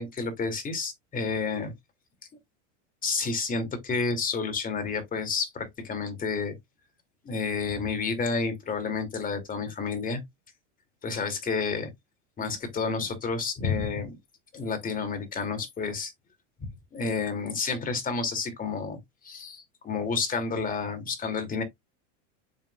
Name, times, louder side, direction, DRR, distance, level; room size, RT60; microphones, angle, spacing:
voice 1, 0.0-1.7 3.0-6.6 7.2-10.2 11.0-11.9 12.4-14.2 14.5-16.1 16.6-19.0 19.2-21.6, left 4 dB, 20° left, 2.7 m, -30 dB
7.1 x 6.0 x 2.4 m
supercardioid pair, 135°, 38 cm